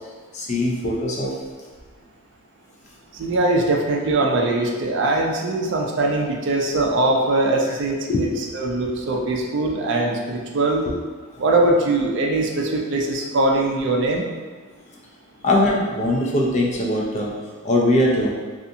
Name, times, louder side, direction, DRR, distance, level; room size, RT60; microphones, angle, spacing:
voice 1, 0.3-1.3 3.3-3.4 8.1-8.2 15.4-17.3 17.6-18.4, left 1 dB, 30° left, -2 dB, 0.4 m, -21 dB
voice 2, 3.1-8.3 8.5-10.8 11.4-14.2, right 2 dB, 55° right, 1 dB, 0.3 m, -21 dB
2.5 x 2.4 x 2.7 m, 1.4 s
head